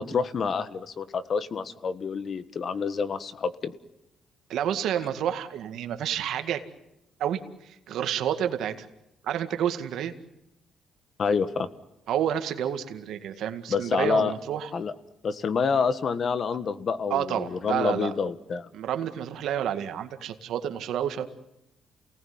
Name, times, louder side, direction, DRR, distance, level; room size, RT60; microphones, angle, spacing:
voice 1, 0.0-3.7 11.2-11.7 13.7-14.3 14.7-14.9 15.2-18.7, left 5 dB, 50° left, 13 dB, 1.5 m, -27 dB
voice 2, 4.5-6.6 7.2-7.4 7.7-8.9 9.2-10.1 12.1-14.7 17.1-18.1 18.7-21.3, right 10 dB, 80° right, 8 dB, 2.0 m, -29 dB
29.0 x 19.0 x 9.6 m, 0.89 s
cardioid pair, 90°, 0 cm